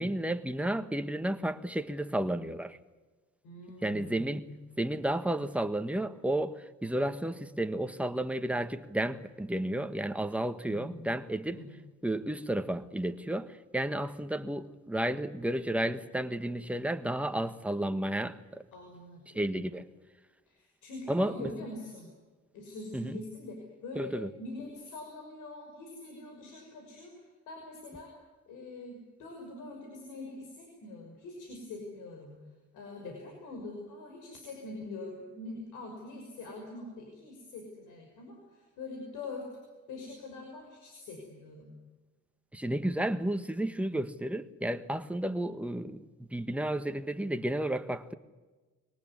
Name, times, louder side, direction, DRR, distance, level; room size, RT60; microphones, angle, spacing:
voice 1, 0.0-2.8 3.8-4.4 4.8-11.6 12.0-18.6 19.3-19.9 21.1-21.5 22.9-23.2 23.9-24.3 42.5-48.1, right 1 dB, 5° right, 1.4 m, -32 dB
voice 2, 3.4-4.5 10.6-11.2 11.5-11.8 18.7-19.8 20.5-22.1 22.5-28.1 28.5-32.3 32.7-39.5 39.9-41.7, left 2 dB, 90° left, 6.1 m, -44 dB
23.5 x 19.0 x 9.6 m
cardioid pair, 90°, 30 cm